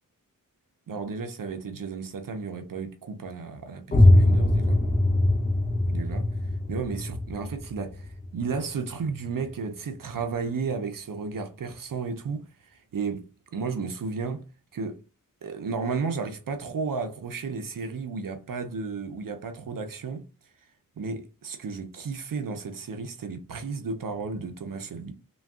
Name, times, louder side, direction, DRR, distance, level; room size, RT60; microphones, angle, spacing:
voice 1, 0.9-4.8 5.9-14.5 14.7-15.0 15.4-20.3 21.0-25.1, right 5 dB, 70° right, 0.5 m, -33 dB
sound 1, 3.9-9.5, left 1 dB, 25° left, 0.6 m, -22 dB
3.4 x 2.2 x 2.3 m
wide cardioid pair, 70°, 34 cm